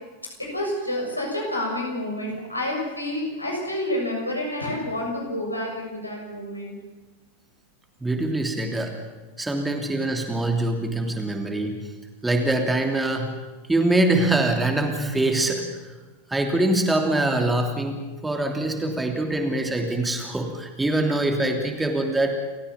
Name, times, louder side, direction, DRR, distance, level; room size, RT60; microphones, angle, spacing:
voice 1, 0.4-6.7, left 1 dB, 85° left, -1 dB, 6.8 m, -29 dB
voice 2, 8.0-9.0 9.4-11.8 12.2-13.3 13.7-15.6 16.3-22.3, right 2 dB, 10° right, 3 dB, 3.0 m, -24 dB
29.0 x 15.0 x 7.2 m, 1.2 s
figure-of-eight pair, 90°, 0 cm